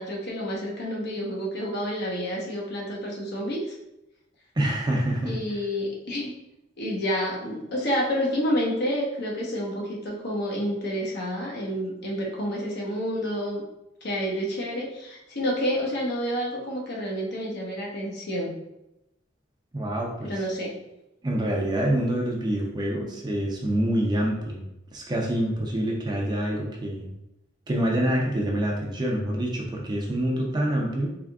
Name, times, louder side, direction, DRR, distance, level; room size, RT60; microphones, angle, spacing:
voice 1, 0.0-3.7 5.3-6.3 6.8-13.6 14.0-18.5 20.2-20.8, equal, 55° left, -3 dB, 0.9 m, -29 dB
voice 2, 4.6-5.4 19.7-20.3 21.2-24.6 24.9-27.1 27.7-31.2, right 1 dB, 20° right, -1 dB, 0.5 m, -26 dB
3.5 x 3.5 x 2.3 m, 0.89 s
head